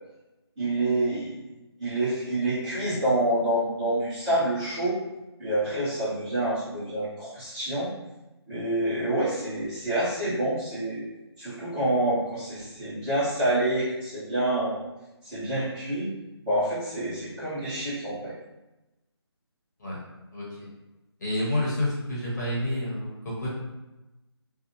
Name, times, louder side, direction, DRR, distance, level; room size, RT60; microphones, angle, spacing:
voice 1, 0.6-1.4 1.8-5.0 5.4-7.9 8.5-11.0 11.4-14.8 15.2-16.1 16.4-18.3, right 1 dB, 15° right, -14 dB, 1.0 m, -27 dB
voice 2, 20.3-20.7 21.2-23.5, left 1 dB, 40° left, -6 dB, 0.8 m, -29 dB
2.6 x 2.1 x 2.9 m, 1.0 s
figure-of-eight pair, 155°, 14 cm